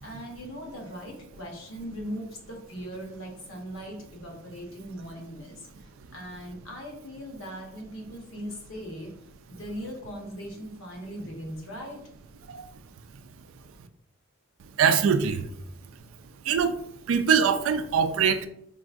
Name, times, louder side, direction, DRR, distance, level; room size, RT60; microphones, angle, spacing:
voice 1, 0.0-5.7 6.1-9.1 9.5-12.0, equal, 65° left, 0 dB, 0.9 m, -39 dB
voice 2, 14.8-15.4 16.5-16.7 17.1-18.5, right 6 dB, 70° right, 9 dB, 0.3 m, -22 dB
3.8 x 2.5 x 2.3 m, 0.73 s
head